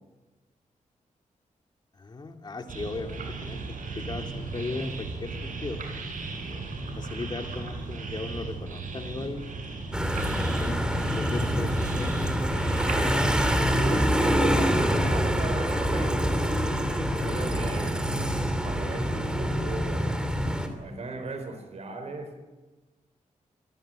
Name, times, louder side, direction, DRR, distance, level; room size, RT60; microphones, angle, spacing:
voice 1, 2.0-3.6 3.9-5.8 6.4-6.7 7.0-9.6 10.5-12.2 13.7-14.1, left 3 dB, 35° left, 4 dB, 2.6 m, -37 dB
sound 1, 2.7-14.1, right 3 dB, 80° right, 7.4 m, -36 dB
sound 2, 9.9-20.7, equal, 5° right, 3.0 m, -25 dB
voice 2, 13.8-16.1 16.6-20.2 20.8-22.3, right 3 dB, 55° right, 7 dB, 4.3 m, -37 dB
26.0 x 20.0 x 9.0 m, 1.2 s
wide cardioid pair, 150°, 13 cm